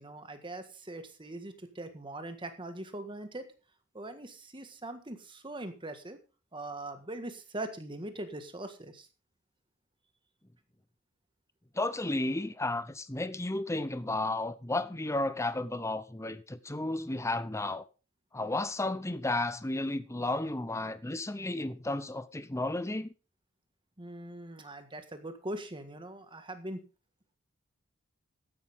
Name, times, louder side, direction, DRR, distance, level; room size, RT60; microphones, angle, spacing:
voice 1, 0.0-3.4 3.9-6.2 6.5-9.1 24.0-26.8, right 1 dB, 25° right, 1.7 m, -41 dB
voice 2, 11.7-17.8 18.3-23.1, left 2 dB, 15° left, 0.8 m, -33 dB
14.0 x 10.5 x 3.7 m
head